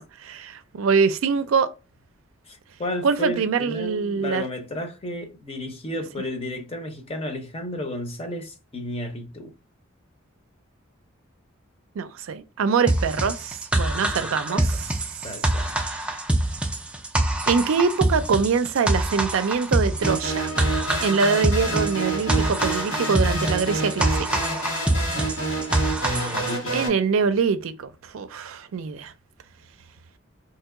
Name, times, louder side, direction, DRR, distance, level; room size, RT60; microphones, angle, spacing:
voice 1, 0.0-1.7 3.0-4.4 12.0-14.9 17.5-20.5 21.0-24.5 26.7-29.1, right 5 dB, 75° right, 0.4 m, -24 dB
voice 2, 2.5-9.5 13.9-14.7 15.2-15.7 26.1-26.9, left 1 dB, 30° left, 0.6 m, -33 dB
sound 1, 12.9-26.6, right 1 dB, 5° right, 0.3 m, -25 dB
sound 2, 20.0-26.9, right 2 dB, 70° left, 1.8 m, -28 dB
2.9 x 2.8 x 3.5 m
head